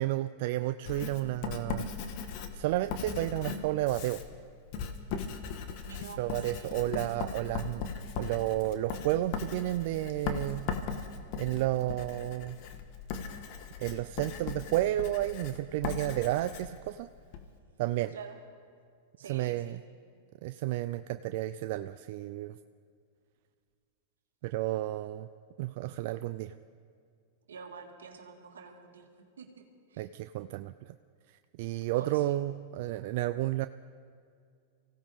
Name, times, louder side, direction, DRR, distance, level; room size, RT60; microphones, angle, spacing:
voice 1, 0.0-1.9 2.5-4.2 6.2-10.7 11.4-12.6 13.8-17.1 17.8-18.1 19.3-19.8 20.4-22.6 24.4-25.3 25.6-26.5 30.0-31.0 31.6-33.7, right 15 dB, 60° right, 11 dB, 0.4 m, -32 dB
Writing, 0.9-17.5, left 6 dB, 55° left, 1.4 m, -38 dB
voice 2, 5.8-7.0 18.1-18.4 19.2-19.8 27.5-29.1 29.4-30.1 31.9-32.4, right 6 dB, 90° right, 3 dB, 1.9 m, -48 dB
24.5 x 16.5 x 3.6 m, 2.2 s
hypercardioid pair, 115°, 0 cm